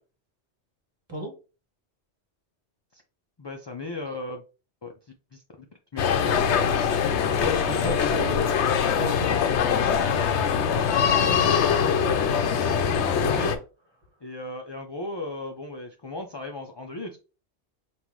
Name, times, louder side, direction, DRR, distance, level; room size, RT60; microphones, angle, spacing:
voice 1, 3.4-4.4 4.8-4.9 5.3-5.4 5.9-6.0 10.7-12.1 14.2-17.2, left 2 dB, 45° left, 2 dB, 0.3 m, -36 dB
sound 1, 6.0-13.6, left 7 dB, 80° left, 0.9 m, -23 dB
voice 2, 7.4-10.0 13.2-13.6, right 1 dB, 25° right, 1 dB, 1.1 m, -34 dB
5.3 x 2.5 x 3.0 m, 0.32 s
omnidirectional pair, 1.2 m